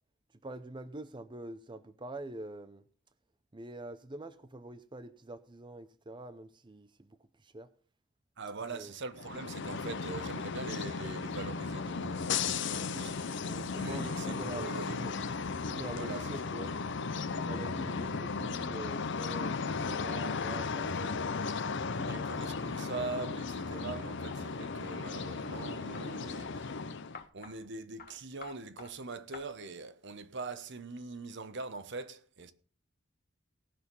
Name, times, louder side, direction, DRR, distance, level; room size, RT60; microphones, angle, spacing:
voice 1, 0.4-2.8 3.5-7.7 8.7-8.9 13.5-15.1 15.7-16.8 17.4-21.2 21.7-22.9 23.6-23.7, right 2 dB, 25° right, 0.7 m, -45 dB
voice 2, 8.4-13.5 13.7-15.0 15.9-16.3 17.6-17.7 22.1-26.8 27.3-32.5, right 3 dB, 60° right, 0.9 m, -42 dB
sound 1, 9.1-27.2, left 4 dB, 65° left, 0.7 m, -35 dB
sound 2, 24.3-26.1 27.1-27.6 28.0-28.1 28.4-28.9 29.3-29.4, left 5 dB, 45° left, 1.4 m, -50 dB
18.0 x 6.4 x 5.4 m
head